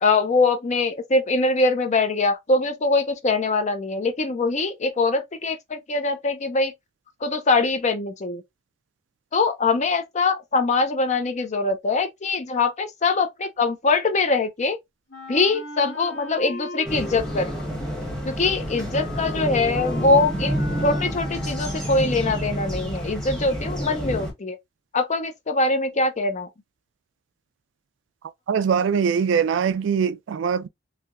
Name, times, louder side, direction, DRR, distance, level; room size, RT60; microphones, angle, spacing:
voice 1, 0.0-6.7 7.2-8.4 9.3-14.8 15.3-17.5 18.2-24.6 24.9-26.5, left 3 dB, 40° left, 0.6 m, -23 dB
Wind instrument woodwind instrument, 15.1-22.1, left 1 dB, 70° left, 1.3 m, -38 dB
sound 1, 16.8-24.3, equal, 5° left, 1.1 m, -29 dB
voice 2, 28.5-30.7, right 7 dB, 70° right, 0.3 m, -22 dB
3.3 x 2.7 x 2.4 m
head